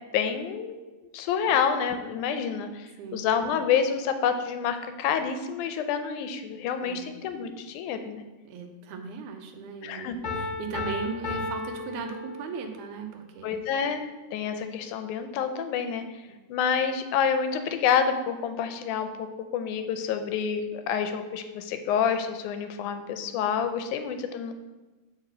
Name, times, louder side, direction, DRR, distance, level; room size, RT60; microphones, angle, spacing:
voice 1, 0.1-0.8 1.1-8.2 9.8-10.2 13.4-14.0 14.3-16.0 16.5-19.3 19.5-24.5, left 7 dB, 90° left, 8 dB, 2.1 m, -28 dB
voice 2, 8.4-13.7, right 5 dB, 85° right, 5 dB, 2.2 m, -37 dB
Piano, 10.2-12.8, left 3 dB, 55° left, 1.7 m, -34 dB
5.8 x 4.3 x 6.0 m, 1.2 s
omnidirectional pair, 3.4 m